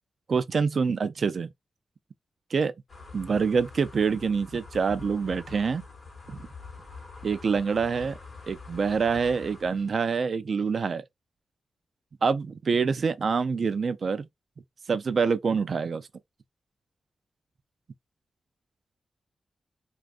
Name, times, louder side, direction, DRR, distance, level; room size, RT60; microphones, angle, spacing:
voice 1, 0.3-1.5 2.5-2.7 3.1-5.8 6.3-6.4 7.2-8.2 8.5-11.0 12.2-14.3 14.9-16.1, right 5 dB, 50° right, 0.3 m, -26 dB
sound 1, 2.9-9.9, left 4 dB, 45° left, 0.8 m, -45 dB
2.5 x 2.3 x 2.3 m
wide cardioid pair, 160°, 0 cm